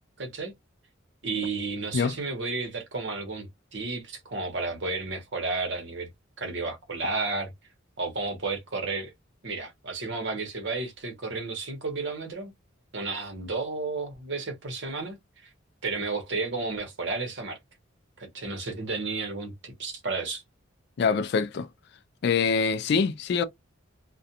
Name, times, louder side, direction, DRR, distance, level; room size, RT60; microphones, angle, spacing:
voice 1, 0.2-0.5 1.2-6.1 6.4-7.5 8.0-9.1 9.4-12.5 12.9-15.2 15.4-15.5 15.8-17.6 18.2-20.4, right 3 dB, 60° right, 0.9 m, -32 dB
voice 2, 21.0-21.7 22.2-23.4, left 5 dB, 55° left, 0.3 m, -24 dB
2.4 x 2.2 x 2.7 m
head